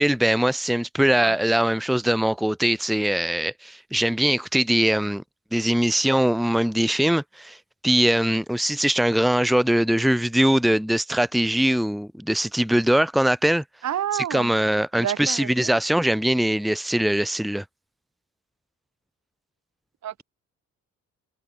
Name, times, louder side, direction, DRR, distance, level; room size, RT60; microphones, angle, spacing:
voice 1, 0.0-5.2 5.5-7.6 7.8-13.6 14.1-17.6, right 1 dB, ahead, 1.2 m, -22 dB
voice 2, 13.8-14.5 15.0-15.8 20.0-20.2, right 10 dB, 65° right, 2.5 m, -29 dB
cardioid pair, 90°, 30 cm